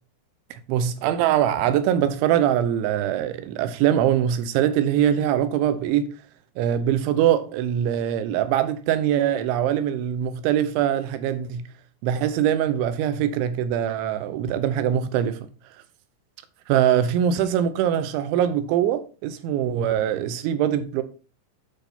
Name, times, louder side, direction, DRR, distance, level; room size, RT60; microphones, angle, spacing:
voice 1, 0.7-6.1 6.6-11.7 12.0-15.4 16.7-21.0, right 10 dB, 90° right, 3.2 m, -22 dB
8.7 x 5.4 x 4.3 m
omnidirectional pair, 5.2 m